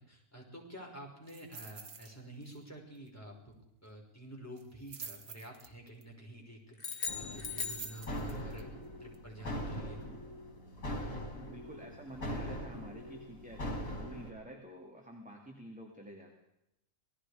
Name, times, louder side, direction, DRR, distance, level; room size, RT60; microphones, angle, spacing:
voice 1, 0.0-8.7 9.0-10.0, right 1 dB, 10° left, -1 dB, 5.5 m, -49 dB
sound 1, 1.3-2.1 2.4-2.7 3.0-3.1 4.6-6.0 7.3-8.6 9.1-9.2, right 5 dB, 75° right, 1.9 m, -48 dB
sound 2, 6.8-8.6, left 5 dB, 40° left, 2.4 m, -40 dB
sound 3, 7.1-14.3, equal, 80° left, 4.5 m, -41 dB
voice 2, 11.3-16.4, right 1 dB, 5° right, 1 dB, 2.5 m, -49 dB
27.5 x 19.0 x 5.0 m, 0.85 s
omnidirectional pair, 1.4 m